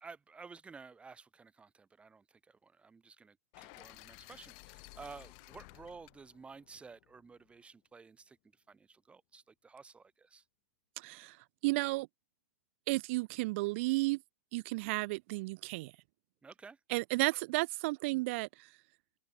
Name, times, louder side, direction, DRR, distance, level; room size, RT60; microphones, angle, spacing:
voice 1, 0.0-10.4 16.4-16.8, right 4 dB, 15° right, 2.8 m, -53 dB
sound 1, 3.5-7.6, left 40 dB or more, 45° left, 4.1 m, -55 dB
voice 2, 11.0-11.4 11.6-12.1 12.9-14.2 14.5-15.9 16.9-18.7, right 23 dB, 50° right, 1.2 m, -33 dB
open air
hypercardioid pair, 105°, 8 cm